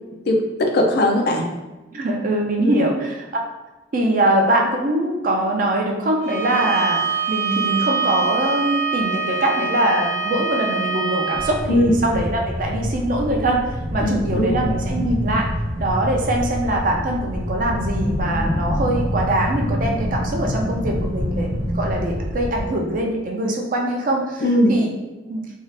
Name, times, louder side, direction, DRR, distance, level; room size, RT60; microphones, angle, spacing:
voice 1, 0.3-1.5 2.6-2.8 11.7-11.9 14.0-14.6 24.4-24.8, left 1 dB, 55° left, 2 dB, 0.4 m, -19 dB
voice 2, 1.9-3.5 3.9-15.5 15.8-24.4 24.7-24.9 25.3-25.4, right 1 dB, 45° right, 0 dB, 0.4 m, -22 dB
Bowed string instrument, 6.2-11.5, right 5 dB, 85° right, 0.8 m, -24 dB
sound 1, 11.3-22.7, equal, 70° left, 1.0 m, -26 dB
2.7 x 2.3 x 3.2 m, 1.1 s
head